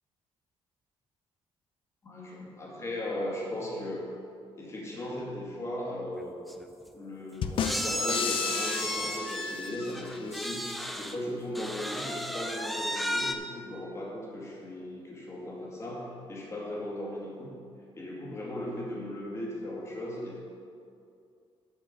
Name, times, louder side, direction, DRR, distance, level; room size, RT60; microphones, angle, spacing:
voice 1, 2.0-4.1 4.5-6.3 6.9-17.5 18.0-20.4, left 1 dB, 25° left, -3 dB, 2.4 m, -37 dB
sound 1, 6.2-6.3 6.5-6.7 7.6-11.2 11.5-13.3, equal, ahead, 0.5 m, -34 dB
sound 2, 7.4-10.2, left 7 dB, 55° left, 0.6 m, -33 dB
11.5 x 5.3 x 6.7 m, 2.5 s
cardioid pair, 140°, 11 cm